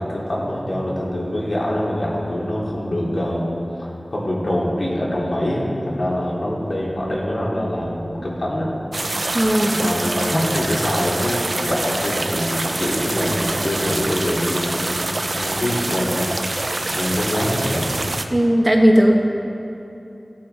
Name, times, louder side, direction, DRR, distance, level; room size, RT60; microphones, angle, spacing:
voice 1, 0.0-3.5 3.8-8.7 9.7-18.1, left 1 dB, 75° left, -6 dB, 2.7 m, -24 dB
sound 1, 8.9-18.2, right 2 dB, 60° right, 0.6 m, -25 dB
voice 2, 9.3-9.8 18.3-19.1, equal, 35° right, 0 dB, 1.4 m, -16 dB
17.5 x 8.5 x 3.4 m, 2.9 s
wide cardioid pair, 55°, 0 cm